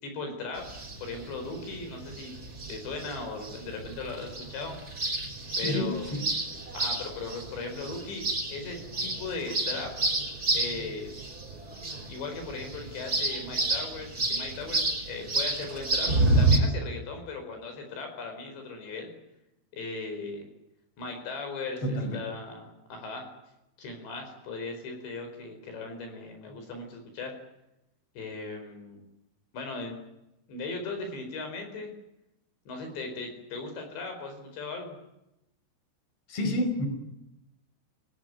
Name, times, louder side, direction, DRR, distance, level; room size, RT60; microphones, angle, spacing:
voice 1, 0.0-0.7 1.0-2.3 2.7-4.8 5.6-6.2 6.7-8.2 8.5-10.0 10.5-11.1 12.1-16.1 16.4-19.1 19.7-20.4 21.0-23.3 23.8-27.4 28.1-29.0 29.5-29.9 30.5-31.9 32.7-35.0, left 3 dB, 65° left, 5 dB, 6.7 m, -38 dB
sound 1, 0.6-16.6, right 2 dB, 20° right, 5.2 m, -30 dB
voice 2, 5.6-6.2 21.8-22.2 36.3-36.9, left 1 dB, 30° left, 6 dB, 6.0 m, -29 dB
28.0 x 19.0 x 9.6 m, 0.88 s
omnidirectional pair, 5.5 m